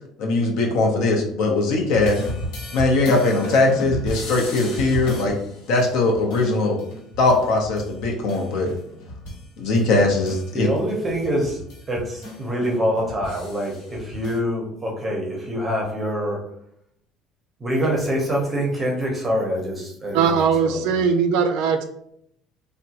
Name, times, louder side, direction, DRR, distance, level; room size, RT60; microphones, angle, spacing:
voice 1, 0.2-2.2 2.7-5.4 5.7-6.8 7.2-8.7 9.6-10.7, left 2 dB, 65° left, 1 dB, 0.7 m, -20 dB
sound 1, 1.9-9.5 9.7-14.4, left 1 dB, 85° left, 1.1 m, -35 dB
voice 2, 10.5-11.6 11.9-16.4 17.6-21.0, equal, 15° right, -1 dB, 0.7 m, -25 dB
voice 3, 20.1-21.8, right 6 dB, 70° right, 7 dB, 0.3 m, -20 dB
3.5 x 2.1 x 2.8 m, 0.72 s
cardioid pair, 170°, 0 cm